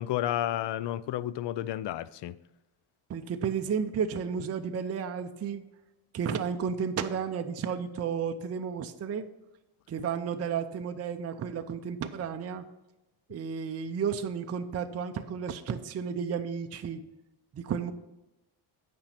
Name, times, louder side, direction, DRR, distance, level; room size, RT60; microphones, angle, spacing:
voice 1, 0.0-2.4, left 12 dB, 60° left, 0.5 m, -31 dB
voice 2, 3.1-5.6 6.1-9.3 9.9-12.6 13.3-17.0 17.5-17.9, right 7 dB, 30° right, 0.5 m, -32 dB
8.9 x 5.3 x 5.8 m
cardioid pair, 130°, 49 cm